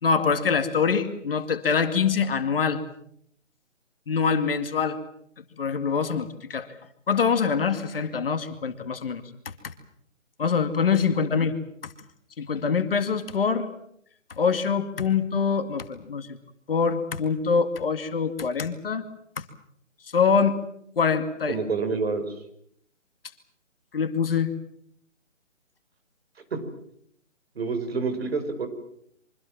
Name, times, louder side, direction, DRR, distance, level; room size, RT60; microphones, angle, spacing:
voice 1, 0.0-2.8 4.1-5.0 5.4-6.7 7.1-9.2 9.6-9.7 10.4-11.6 11.8-11.9 12.4-13.7 14.4-16.4 16.7-19.0 19.4-19.5 20.1-20.6 21.0-21.6 23.9-24.5, left 6 dB, 45° left, 9 dB, 2.3 m, -24 dB
voice 2, 21.5-22.3 26.5-26.6 27.6-28.7, right 4 dB, 50° right, 8 dB, 5.5 m, -27 dB
26.0 x 25.0 x 7.5 m, 0.70 s
figure-of-eight pair, 150°, 38 cm